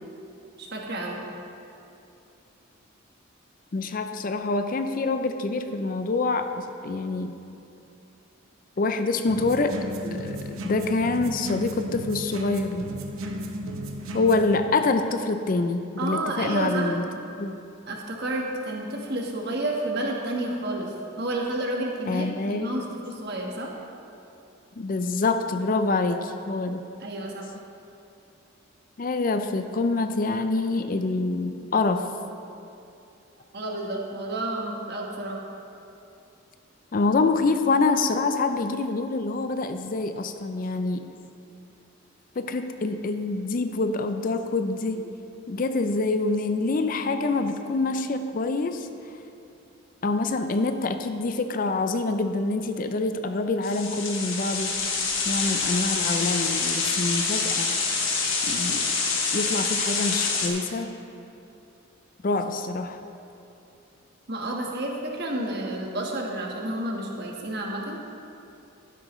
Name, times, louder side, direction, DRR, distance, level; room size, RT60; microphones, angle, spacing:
voice 1, 0.6-1.2 16.0-17.0 17.9-20.9 21.2-23.7 27.0-27.5 33.5-35.4 64.3-68.0, right 1 dB, 50° right, 0 dB, 1.3 m, -30 dB
voice 2, 3.7-7.3 8.8-9.8 10.0-12.8 14.1-17.1 17.4-17.5 22.1-22.8 24.8-26.8 29.0-32.1 36.9-41.1 42.4-45.1 45.5-48.9 50.0-54.7 55.3-57.7 58.4-58.9 59.3-60.9 62.2-63.0, left 3 dB, 40° left, 8 dB, 0.4 m, -26 dB
sound 1, 9.3-14.5, equal, 80° right, 0.9 m, -34 dB
sound 2, 53.6-60.5, left 4 dB, 70° left, 1.4 m, -26 dB
12.5 x 10.0 x 3.1 m, 2.7 s
head